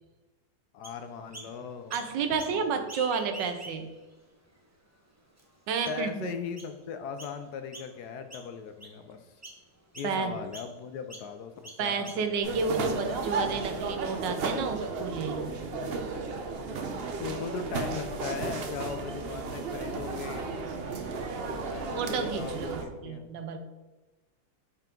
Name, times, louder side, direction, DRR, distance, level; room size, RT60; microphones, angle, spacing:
voice 1, 0.7-2.6 5.9-9.4 9.9-12.6 15.7-15.9 17.2-20.5 21.5-23.3, left 6 dB, 70° left, 8 dB, 1.1 m, -39 dB
Chirp tweet, 0.8-1.5 1.9-2.6 2.8-4.0 4.6-4.7 5.4-5.5 5.8-6.1 6.6-6.7 7.2-7.4 7.7-8.0 8.3-9.0 9.4-9.6 9.9-10.1 10.5-10.7 11.1-11.3 11.6-12.4, right 1 dB, 15° right, 0.5 m, -45 dB
voice 2, 1.9-3.9 5.7-6.3 10.0-10.4 11.8-15.5 22.0-23.6, right 5 dB, 85° right, 7 dB, 1.4 m, -31 dB
sound 1, 12.4-22.8, right 4 dB, 55° right, 0.6 m, -34 dB
5.8 x 4.7 x 5.2 m, 1.2 s
omnidirectional pair, 1.9 m